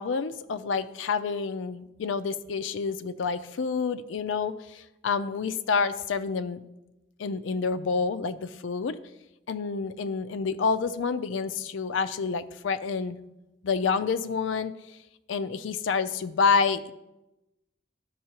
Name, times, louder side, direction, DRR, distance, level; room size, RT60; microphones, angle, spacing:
voice 1, 0.0-6.6 7.2-9.0 9.5-13.2 13.6-15.0 15.3-16.9, left 5 dB, 85° left, 11 dB, 0.4 m, -28 dB
12.5 x 5.5 x 2.9 m, 0.95 s
head